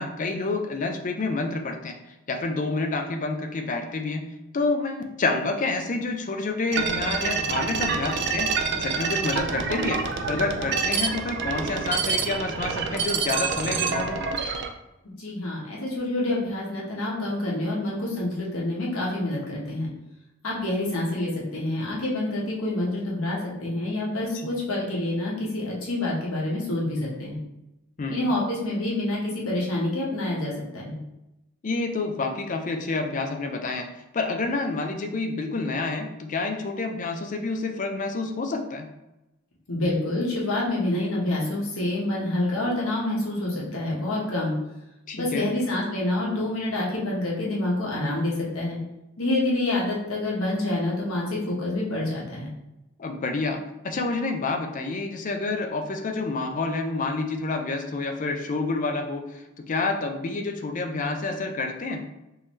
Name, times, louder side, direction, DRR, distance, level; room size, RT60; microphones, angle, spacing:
voice 1, 0.0-2.0 2.3-4.2 4.5-10.0 10.3-14.2 24.3-24.5 28.0-28.3 31.6-33.9 34.1-38.9 45.1-45.5 53.0-62.0, left 3 dB, 40° left, 4 dB, 0.4 m, -28 dB
sound 1, 6.7-14.7, right 5 dB, 55° right, 0.4 m, -27 dB
voice 2, 15.2-19.9 20.4-27.3 28.1-31.0 39.7-44.5 45.1-48.8 49.2-52.5, left 1 dB, 80° left, -4 dB, 1.2 m, -27 dB
3.8 x 2.6 x 3.1 m, 0.95 s
head